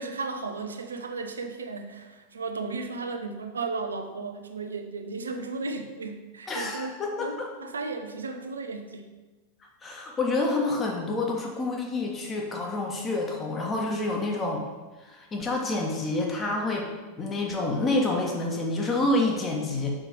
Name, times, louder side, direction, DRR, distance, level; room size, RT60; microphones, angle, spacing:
voice 1, 0.0-6.9 7.2-9.1, right 3 dB, 70° right, 7 dB, 0.7 m, -35 dB
voice 2, 6.5-7.5 9.8-14.6 15.0-16.9 17.2-19.9, left 2 dB, 20° left, 0 dB, 1.5 m, -28 dB
6.3 x 5.7 x 4.9 m, 1.2 s
figure-of-eight pair, 90°, 0 cm